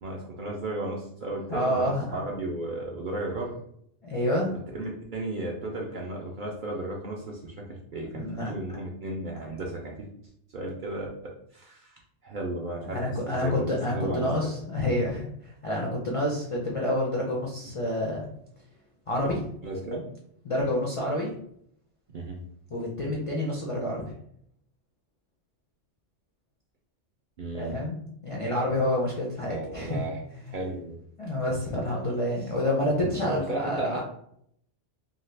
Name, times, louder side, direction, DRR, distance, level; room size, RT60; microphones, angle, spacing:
voice 1, 0.0-3.6 4.7-10.1 10.5-11.1 11.5-13.0 13.3-13.5 13.9-14.3 19.6-20.1 22.1-22.4 27.4-27.8 29.5-30.2 30.5-31.0 33.3-34.0, right 2 dB, 60° right, -2 dB, 0.5 m, -34 dB
voice 2, 1.5-2.2 4.0-4.5 8.2-8.5 12.9-18.3 19.1-19.4 20.4-21.3 22.7-24.0 27.5-30.0 31.2-34.0, left 1 dB, 55° left, -3 dB, 0.3 m, -28 dB
2.7 x 2.3 x 3.2 m, 0.70 s
omnidirectional pair, 1.2 m